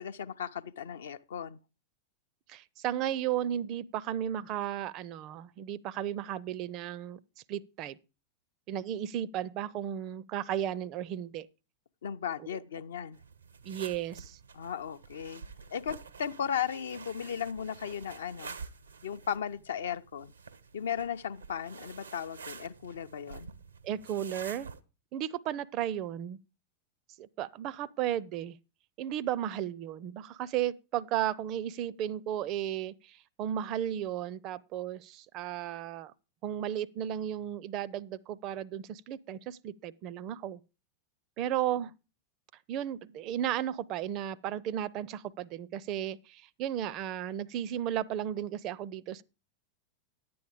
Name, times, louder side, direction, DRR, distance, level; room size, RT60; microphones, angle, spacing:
voice 1, 0.0-1.6 12.0-13.2 14.5-15.4 15.7-18.6 19.0-20.3 20.7-23.5, left 8 dB, 65° left, 0.5 m, -36 dB
voice 2, 2.5-7.2 7.5-8.0 8.7-11.5 13.6-14.4 23.8-24.7 25.1-26.4 27.2-28.6 29.0-36.1 36.4-40.6 41.4-41.9 42.7-49.2, right 11 dB, 40° right, 0.5 m, -34 dB
sound 1, 13.1-24.8, right 5 dB, 75° right, 0.7 m, -48 dB
10.5 x 8.6 x 4.9 m
figure-of-eight pair, 90°, 0 cm